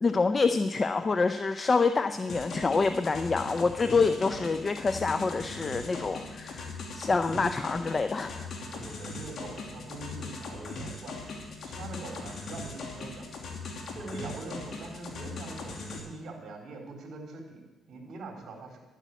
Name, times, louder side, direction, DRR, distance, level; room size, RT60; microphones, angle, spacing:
voice 1, 0.0-8.5, left 4 dB, 30° left, 9 dB, 0.7 m, -27 dB
sound 1, 2.3-16.0, left 3 dB, 60° left, 2.8 m, -40 dB
voice 2, 8.6-11.2 11.6-13.5 13.9-18.8, right 2 dB, 60° right, 2 dB, 3.9 m, -43 dB
12.0 x 8.5 x 8.3 m, 1.1 s
cardioid pair, 90°, 0 cm